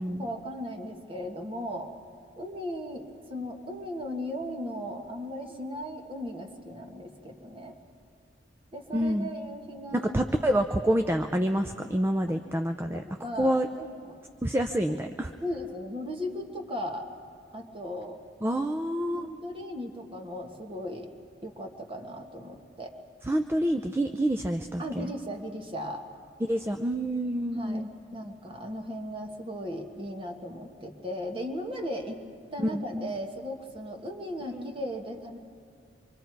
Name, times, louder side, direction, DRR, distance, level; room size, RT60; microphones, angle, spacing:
voice 1, 0.0-1.9 2.4-7.8 8.7-10.4 12.3-12.4 12.9-14.2 14.9-15.0 15.4-17.0 17.5-18.2 19.1-21.1 21.4-22.9 24.8-26.0 27.5-27.8 28.1-32.2 32.5-35.4, equal, 30° right, 3 dB, 1.6 m, -37 dB
voice 2, 8.9-9.3 9.9-13.0 13.4-13.7 14.4-15.3 18.4-19.3 23.3-25.1 26.4-27.9 32.6-33.1 34.5-34.7, equal, 15° right, 6 dB, 0.5 m, -27 dB
25.0 x 24.0 x 4.6 m, 2.2 s
head